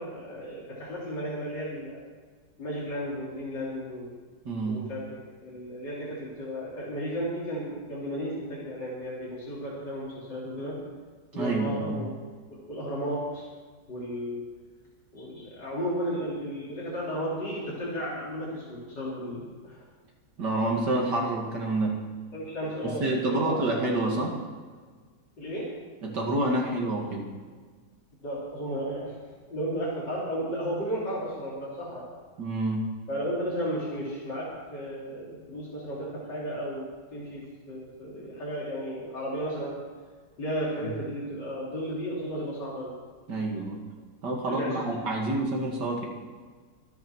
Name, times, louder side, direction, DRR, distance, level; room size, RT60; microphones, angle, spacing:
voice 1, 0.0-2.0 2.6-4.1 4.7-5.0 5.4-10.7 11.3-12.1 12.7-13.5 13.9-14.4 15.1-19.8 22.3-23.5 25.4-25.7 28.2-29.2 29.5-32.0 33.1-37.4 37.7-39.7 40.4-42.9 44.5-44.8, equal, 80° left, -7 dB, 4.0 m, -34 dB
voice 2, 4.5-4.8 11.3-12.0 20.4-22.0 22.8-24.4 26.0-27.3 32.4-32.9 40.8-40.9 43.3-43.8 44.2-46.1, right 2 dB, 75° right, -1 dB, 2.6 m, -28 dB
26.0 x 9.3 x 4.6 m, 1.5 s
omnidirectional pair, 1.9 m